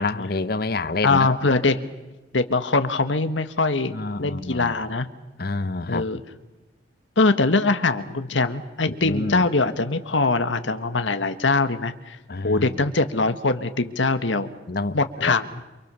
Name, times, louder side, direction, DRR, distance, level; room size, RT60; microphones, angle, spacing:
voice 1, 0.0-1.3 3.9-4.7 5.4-6.0 8.9-9.5 12.3-12.7 14.7-15.4, left 3 dB, 55° left, 0.9 m, -28 dB
voice 2, 1.0-1.9 2.3-5.1 5.9-6.2 7.2-12.2 12.4-14.5 14.9-15.6, left 3 dB, 85° left, 1.5 m, -22 dB
29.0 x 24.5 x 7.0 m
head